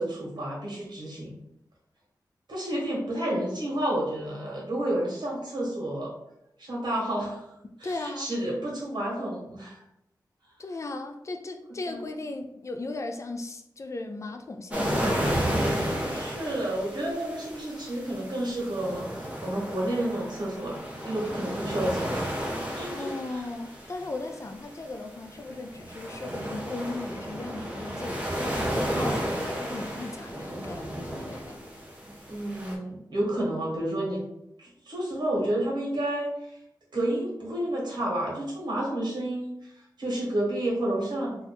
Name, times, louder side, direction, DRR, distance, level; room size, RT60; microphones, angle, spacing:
voice 1, 0.0-1.3 2.5-6.1 6.6-7.4 7.8-9.8 11.9-12.1 16.1-22.3 22.7-23.4 32.0-34.2 34.6-36.6 36.9-39.5 40.0-41.4, right 1 dB, 75° right, -3 dB, 1.4 m, -30 dB
voice 2, 7.6-8.3 10.6-15.2 22.9-31.6, left 2 dB, 40° left, 5 dB, 0.4 m, -37 dB
sound 1, 14.7-32.7, equal, 15° right, 0.8 m, -33 dB
2.9 x 2.3 x 4.0 m, 0.81 s
wide cardioid pair, 105°, 8 cm